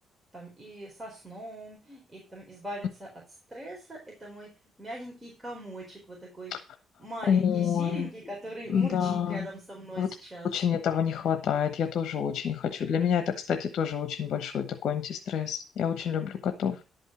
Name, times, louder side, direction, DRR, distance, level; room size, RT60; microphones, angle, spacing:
voice 1, 0.3-3.1 3.5-4.5 4.8-6.5 7.0-10.5, right 1 dB, 15° right, -3 dB, 4.5 m, -41 dB
voice 2, 7.3-8.1 8.7-9.5 10.0-10.1 10.4-16.8, left 8 dB, 70° left, 7 dB, 1.1 m, -28 dB
11.0 x 5.4 x 6.2 m, 0.32 s
cardioid pair, 90°, 0 cm